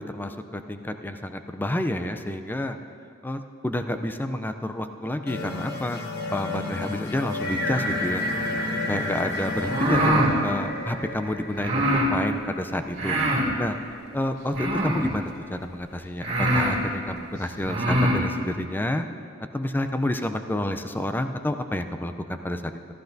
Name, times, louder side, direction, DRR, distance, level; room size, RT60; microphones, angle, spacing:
voice 1, 0.0-2.8 3.2-6.0 6.3-8.6 8.9-13.2 13.6-13.8 14.1-19.0 19.5-22.6, left 1 dB, 10° left, 7 dB, 0.4 m, -29 dB
sound 1, 5.3-12.5, left 3 dB, 55° left, 1.0 m, -34 dB
sound 2, 7.4-12.6, equal, 90° left, 3.3 m, -33 dB
sound 3, 9.6-10.3 11.6-12.1 12.9-13.5 14.5-15.1 15.8-15.9 16.2-16.8 17.6-18.2, right 1 dB, 55° right, 2.0 m, -23 dB
14.5 x 13.5 x 2.6 m, 2.5 s
head